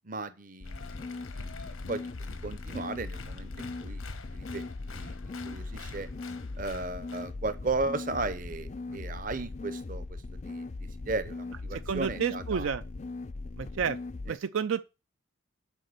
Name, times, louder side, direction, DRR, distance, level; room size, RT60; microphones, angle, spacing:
voice 1, 0.0-4.0 4.3-6.1 6.6-12.7 14.3-14.4, right 3 dB, 40° right, 0.7 m, -36 dB
Applause, 0.6-7.3, left 4 dB, 90° left, 1.2 m, -47 dB
sound 1, 0.6-14.3, left 3 dB, 35° left, 0.4 m, -39 dB
voice 2, 11.7-12.8 13.6-14.0 14.3-14.9, right 6 dB, 75° right, 0.4 m, -30 dB
7.7 x 5.1 x 6.8 m
head